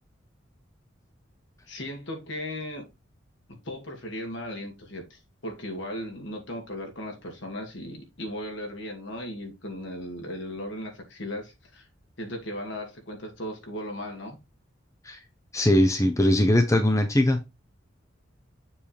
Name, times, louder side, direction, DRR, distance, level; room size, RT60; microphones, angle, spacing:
voice 1, 1.7-2.8 3.6-11.9 12.2-14.4, left 1 dB, 65° left, 2.2 m, -37 dB
voice 2, 15.5-17.4, left 1 dB, 15° left, 0.6 m, -21 dB
7.0 x 3.5 x 4.4 m
head